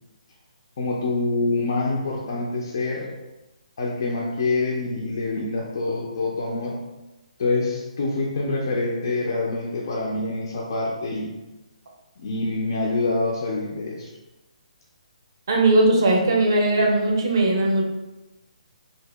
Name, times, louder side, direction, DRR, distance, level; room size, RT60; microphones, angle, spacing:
voice 1, 0.8-3.1 3.8-6.8 7.4-11.3 12.2-14.1, left 3 dB, 30° left, -3 dB, 0.3 m, -26 dB
voice 2, 15.5-17.8, right 2 dB, 30° right, 0 dB, 0.5 m, -19 dB
2.8 x 2.7 x 3.3 m, 1.1 s
hypercardioid pair, 180°, 4 cm